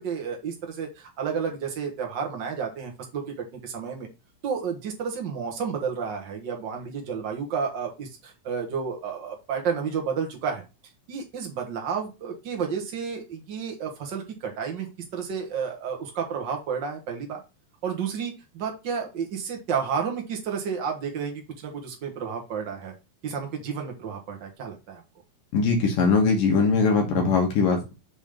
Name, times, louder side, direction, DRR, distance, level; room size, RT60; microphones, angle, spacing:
voice 1, 0.0-4.1 4.4-10.6 11.1-17.4 17.8-22.9 23.2-25.0, right 6 dB, 65° right, 2 dB, 1.1 m, -31 dB
voice 2, 25.5-27.9, left 4 dB, 70° left, 1 dB, 2.9 m, -21 dB
7.3 x 3.5 x 5.1 m, 0.27 s
omnidirectional pair, 4.1 m